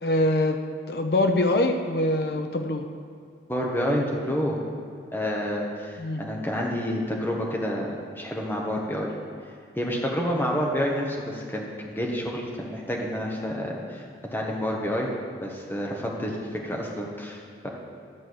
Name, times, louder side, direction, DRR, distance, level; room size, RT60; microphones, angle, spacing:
voice 1, 0.0-2.9 6.0-6.2, left 1 dB, 65° left, 5 dB, 0.7 m, -24 dB
voice 2, 3.5-4.6 5.1-9.1 9.8-14.0 14.3-15.1 15.4-17.7, equal, 10° left, -2 dB, 1.3 m, -29 dB
12.0 x 4.6 x 7.9 m, 2.3 s
head